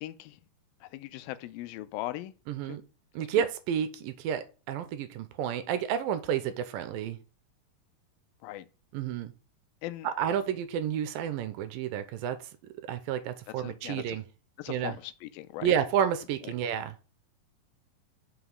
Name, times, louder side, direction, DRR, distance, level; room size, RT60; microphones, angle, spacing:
voice 1, 0.0-0.4 0.9-2.3 2.7-2.8 3.2-3.5 8.4-8.7 9.8-10.1 13.6-14.2 14.6-15.7, left 15 dB, 85° left, 2.4 m, -39 dB
voice 2, 2.5-2.8 3.2-7.2 8.9-9.3 10.0-12.4 12.9-14.2 14.7-14.9 15.6-16.9, right 9 dB, 85° right, 2.5 m, -30 dB
6.0 x 5.0 x 5.4 m
omnidirectional pair, 4.1 m